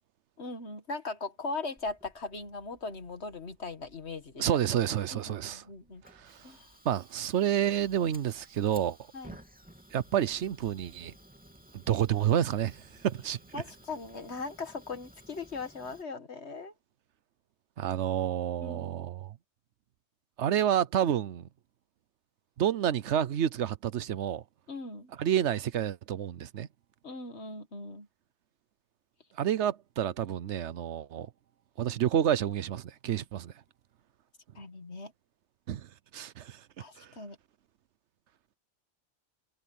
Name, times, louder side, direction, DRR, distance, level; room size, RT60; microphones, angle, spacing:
voice 1, 0.4-4.5 5.1-6.0 6.4-6.7 9.1-9.4 13.5-16.7 18.6-19.0 24.7-25.1 27.0-28.1 34.6-35.1 36.8-37.4, left 3 dB, 65° left, 2.2 m, -39 dB
Fire, 1.8-16.0, equal, 5° right, 2.9 m, -56 dB
voice 2, 4.4-5.6 6.2-6.4 6.8-9.0 9.9-11.1 11.7-13.6 17.8-19.3 20.4-21.5 22.6-24.4 25.2-26.7 29.4-31.3 31.8-33.5 35.7-36.6 37.0-37.1, right 10 dB, 75° right, 1.0 m, -29 dB
omnidirectional pair, 1.2 m